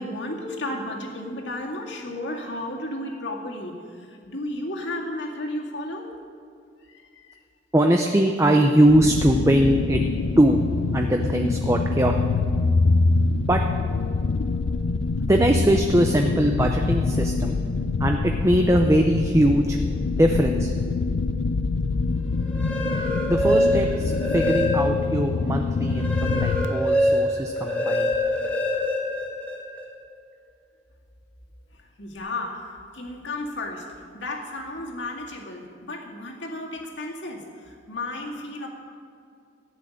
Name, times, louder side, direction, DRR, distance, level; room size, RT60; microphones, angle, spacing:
voice 1, 0.0-3.7 4.0-6.1 6.9-7.0 32.0-33.9 34.1-38.7, left 1 dB, 70° left, 0 dB, 2.2 m, -33 dB
voice 2, 7.7-10.0 10.4-10.6 10.9-12.1 13.5-13.6 15.2-17.6 18.0-19.8 20.2-20.7 23.3-28.1, right 1 dB, 15° right, 3 dB, 0.6 m, -21 dB
sound 1, 8.9-26.7, left 3 dB, 90° left, 0.5 m, -25 dB
sound 2, 22.4-25.1 25.5-29.8, left 1 dB, 5° left, 1.6 m, -25 dB
14.0 x 10.0 x 6.5 m, 2.4 s
head